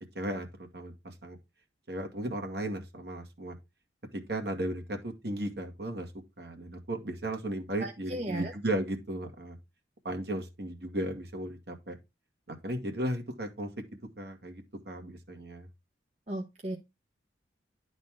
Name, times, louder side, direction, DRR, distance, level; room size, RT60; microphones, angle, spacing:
voice 1, 0.1-1.4 1.9-3.5 4.1-6.1 6.4-9.6 10.0-12.0 12.5-13.7 14.2-15.7, right 1 dB, 60° right, 2.0 m, -35 dB
voice 2, 7.8-8.5 16.3-16.8, right 1 dB, 35° right, 1.1 m, -35 dB
11.0 x 4.2 x 3.7 m
head